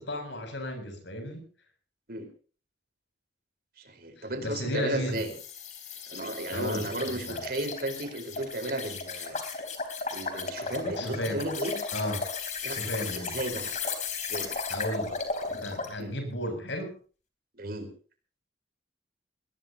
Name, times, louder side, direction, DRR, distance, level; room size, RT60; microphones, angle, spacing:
voice 1, 0.0-1.5 4.2-5.2 6.5-7.4 10.9-11.4 11.9-12.2 12.7-13.4 14.7-15.1 15.6-16.9, left 1 dB, 85° left, 6 dB, 7.3 m, -34 dB
voice 2, 3.8-5.3 6.1-9.4 10.1-11.8 12.6-13.7 14.3-14.5 16.0-16.1 17.6-17.9, right 1 dB, 55° right, 6 dB, 4.5 m, -34 dB
sound 1, 5.2-16.0, left 4 dB, 40° left, 3.7 m, -35 dB
20.5 x 19.5 x 2.9 m, 0.39 s
head